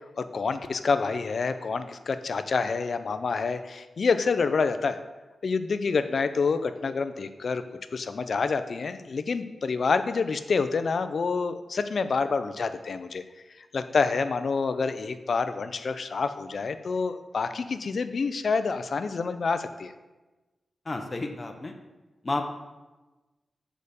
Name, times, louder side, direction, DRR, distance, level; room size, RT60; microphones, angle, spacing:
voice 1, 0.2-5.0 5.4-7.6 7.9-13.2 13.7-19.9, left 4 dB, 50° left, 10 dB, 0.5 m, -27 dB
voice 2, 20.9-21.7 22.2-22.4, left 2 dB, 25° left, 3 dB, 0.8 m, -31 dB
6.6 x 5.0 x 6.9 m, 1.2 s
wide cardioid pair, 165°, 0 cm